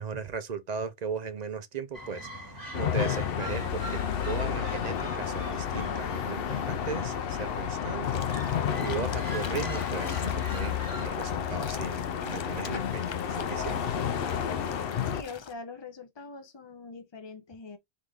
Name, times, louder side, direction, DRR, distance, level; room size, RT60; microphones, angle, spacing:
voice 1, 0.0-13.9, right 5 dB, 50° right, 0.7 m, -37 dB
sound 1, 1.9-11.1, right 1 dB, 20° right, 1.8 m, -43 dB
sound 2, 2.7-15.2, left 8 dB, 70° left, 0.7 m, -31 dB
sound 3, 8.0-15.5, left 6 dB, 45° left, 0.3 m, -44 dB
voice 2, 15.0-17.8, left 4 dB, 30° left, 0.8 m, -43 dB
3.9 x 3.4 x 3.4 m
omnidirectional pair, 1.0 m